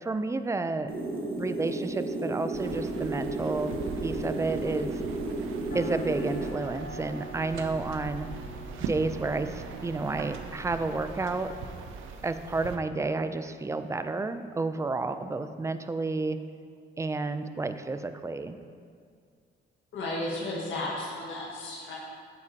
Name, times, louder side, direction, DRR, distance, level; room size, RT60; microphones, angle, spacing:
voice 1, 0.0-0.9 1.4-3.7 4.0-4.9 5.7-8.3 8.9-11.5 12.2-16.4 17.0-18.6, right 3 dB, 15° right, 10 dB, 0.4 m, -31 dB
sound 1, 0.9-6.5, right 2 dB, 45° right, 1.2 m, -33 dB
sound 2, 2.5-12.8, right 5 dB, 85° right, 0.7 m, -40 dB
sound 3, 5.7-11.9, equal, 45° left, 0.8 m, -45 dB
voice 2, 19.9-22.0, left 2 dB, 75° left, -4 dB, 1.6 m, -33 dB
8.4 x 8.3 x 2.8 m, 2.3 s
cardioid pair, 90°, 20 cm